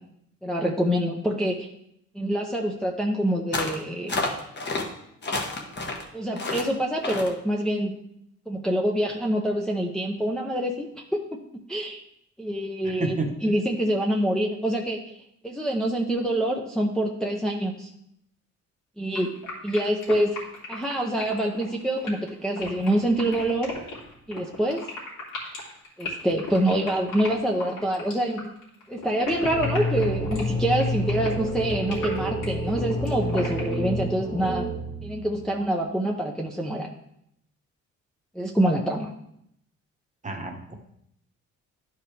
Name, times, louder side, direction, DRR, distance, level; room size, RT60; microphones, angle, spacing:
voice 1, 0.4-1.7 2.1-4.2 6.1-7.9 8.5-11.2 11.7-12.0 12.4-15.0 15.4-17.9 19.0-19.3 19.6-20.4 20.7-23.7 24.3-24.9 26.0-28.5 28.9-34.7 35.0-36.9 38.3-39.1, right 1 dB, ahead, -1 dB, 0.7 m, -26 dB
sound 1, 3.5-3.8 4.1-4.8 5.2-6.0 6.4-6.7 7.0-7.3, left 3 dB, 35° left, 1.3 m, -29 dB
voice 2, 12.8-13.3 40.2-40.8, right 3 dB, 25° right, 4 dB, 1.1 m, -30 dB
sound 2, 19.2-33.8, left 3 dB, 85° left, 2.7 m, -37 dB
sound 3, 29.4-35.4, equal, 20° left, 1.0 m, -29 dB
11.0 x 4.9 x 3.3 m, 0.75 s
cardioid pair, 90°, 30 cm